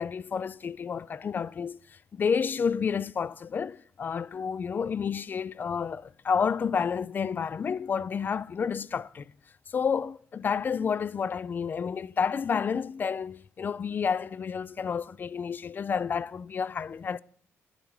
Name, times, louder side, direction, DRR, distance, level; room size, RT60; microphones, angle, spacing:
voice 1, 0.0-9.3 9.7-17.2, left 6 dB, 40° left, 0.3 m, -30 dB
10.0 x 8.9 x 4.7 m
cardioid pair, 90°, 5 cm